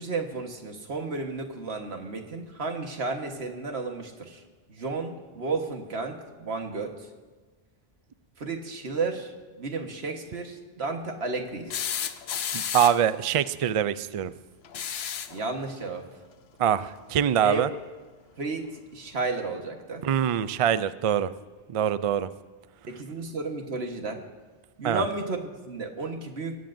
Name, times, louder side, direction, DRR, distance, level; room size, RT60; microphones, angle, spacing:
voice 1, 0.0-4.4 4.7-7.0 8.4-9.3 9.6-11.7 15.3-16.1 17.4-17.7 18.4-18.7 18.9-20.1 22.9-24.2 24.8-26.5, right 3 dB, 80° right, 4 dB, 1.6 m, -32 dB
sound 1, 11.7-13.1 14.6-15.4 17.1-17.2 18.6-18.7, left 8 dB, 80° left, 0.9 m, -32 dB
voice 2, 12.5-14.3 16.6-17.7 20.0-21.3 21.7-22.3 24.8-25.1, right 9 dB, 55° right, 14 dB, 0.4 m, -24 dB
22.0 x 17.5 x 2.6 m, 1.3 s
omnidirectional pair, 1.1 m